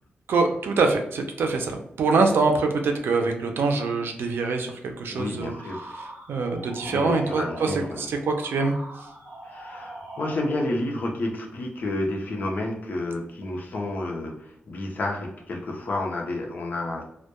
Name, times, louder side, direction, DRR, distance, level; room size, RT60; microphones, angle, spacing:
voice 1, 0.3-5.5 6.0-8.8, right 3 dB, 90° right, 4 dB, 0.4 m, -24 dB
voice 2, 5.1-5.9 6.8-8.1 9.4-17.0, left 2 dB, 50° left, 0 dB, 0.5 m, -30 dB
sound 1, 5.4-10.8, right 1 dB, 60° right, 0.7 m, -41 dB
2.1 x 2.1 x 2.8 m, 0.77 s
wide cardioid pair, 165°, 4 cm